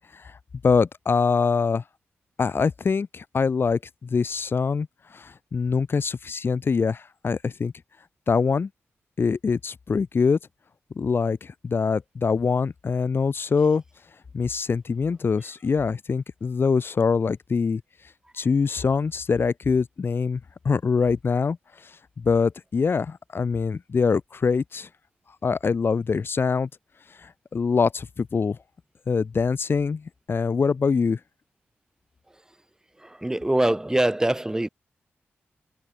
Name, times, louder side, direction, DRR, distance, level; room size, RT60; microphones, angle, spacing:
voice 1, 0.6-1.8 2.4-7.7 8.3-8.7 9.2-10.4 11.0-13.8 14.3-17.8 18.3-21.9 22.2-24.9 25.4-26.7 27.2-28.6 29.1-31.2, left 5 dB, 55° left, 5.6 m, -24 dB
voice 2, 33.0-34.7, right 1 dB, 15° right, 7.3 m, -23 dB
cardioid pair, 80°, 5 cm